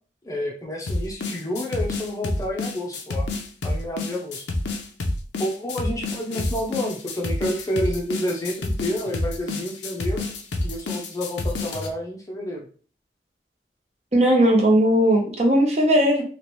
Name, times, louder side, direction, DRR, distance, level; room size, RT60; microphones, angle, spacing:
voice 1, 0.2-3.3 3.6-4.5 5.4-10.3 10.6-12.7, left 1 dB, 20° left, 0 dB, 0.6 m, -29 dB
sound 1, 0.9-11.9, left 2 dB, 90° left, 0.6 m, -28 dB
voice 2, 14.1-16.2, equal, 35° right, 1 dB, 0.8 m, -18 dB
3.2 x 3.0 x 3.0 m, 0.41 s
head